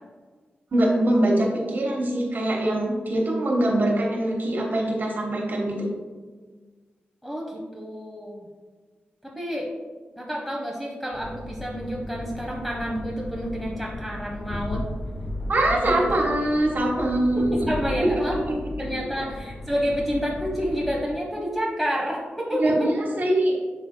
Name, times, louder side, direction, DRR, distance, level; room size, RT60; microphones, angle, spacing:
voice 1, 0.7-5.9 15.5-17.6 18.5-18.6 22.6-22.9 23.2-23.7, right 1 dB, 55° right, -2 dB, 1.3 m, -23 dB
voice 2, 7.2-8.4 9.2-9.7 10.2-14.8 15.7-16.1 17.3-18.5 18.8-23.3, equal, ahead, -3 dB, 0.9 m, -29 dB
sound 1, 11.1-21.0, left 1 dB, 75° left, 1.8 m, -35 dB
7.7 x 5.6 x 2.2 m, 1.4 s
cardioid pair, 75°, 4 cm